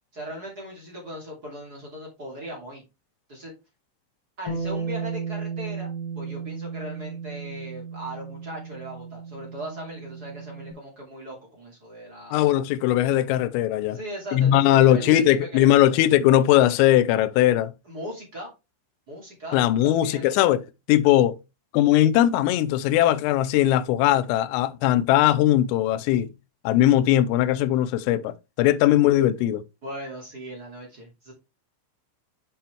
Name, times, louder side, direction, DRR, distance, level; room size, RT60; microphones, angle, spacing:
voice 1, 0.1-2.8 3.3-3.5 4.4-12.4 13.9-15.8 17.8-18.5 19.1-20.3 29.8-31.3, equal, 30° right, 1.9 m, -39 dB
Bass guitar, 4.5-10.7, right 5 dB, 60° left, 2.8 m, -34 dB
voice 2, 12.3-14.0 14.3-17.7 19.5-20.6 20.9-21.4 21.7-26.3 26.6-29.6, left 13 dB, 85° left, 3.2 m, -19 dB
8.6 x 5.6 x 3.3 m
omnidirectional pair, 5.7 m